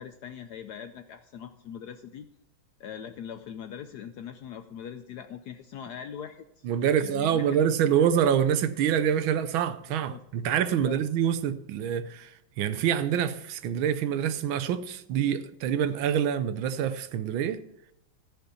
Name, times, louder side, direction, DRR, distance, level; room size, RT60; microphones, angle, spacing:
voice 1, 0.0-2.3 2.8-7.6 10.1-10.2 10.7-11.0, left 8 dB, 75° left, 0.9 m, -41 dB
voice 2, 6.6-17.6, right 9 dB, 80° right, 1.5 m, -26 dB
14.0 x 5.4 x 7.0 m
omnidirectional pair, 2.2 m